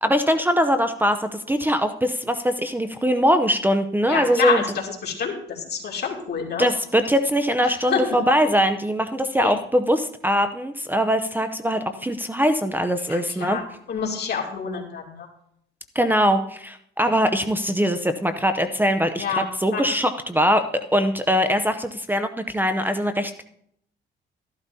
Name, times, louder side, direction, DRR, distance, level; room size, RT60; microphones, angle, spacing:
voice 1, 0.0-4.6 6.6-13.6 15.9-20.6 20.9-23.4, equal, 10° right, 9 dB, 0.6 m, -22 dB
voice 2, 4.0-6.7 7.6-8.0 9.4-9.6 13.1-15.3 19.2-19.8, left 6 dB, 55° left, 0 dB, 2.6 m, -28 dB
13.5 x 12.0 x 2.7 m, 0.69 s
cardioid pair, 90°, 20 cm